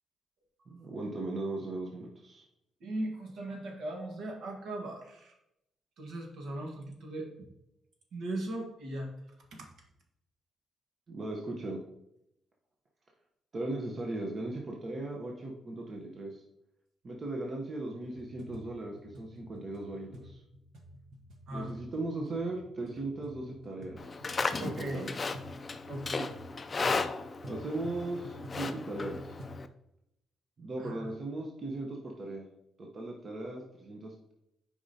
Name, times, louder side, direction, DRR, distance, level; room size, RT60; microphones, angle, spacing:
voice 1, 0.7-2.4 11.1-11.8 13.5-16.4 17.0-20.4 21.5-25.1 27.5-29.4 30.6-32.4 32.8-34.3, right 2 dB, 35° right, 0 dB, 0.8 m, -38 dB
voice 2, 2.8-5.3 6.0-7.5 8.1-9.1 9.5-9.7 21.5-21.7 24.6-25.0 25.9-26.3 30.8-31.1, right 1 dB, 70° right, 2 dB, 1.4 m, -38 dB
sound 1, 18.0-29.6, equal, 90° right, 1.2 m, -49 dB
Livestock farm animals working animals, 24.0-29.7, left 4 dB, 30° left, 0.4 m, -35 dB
8.4 x 5.0 x 2.8 m, 0.83 s
cardioid pair, 140°, 0 cm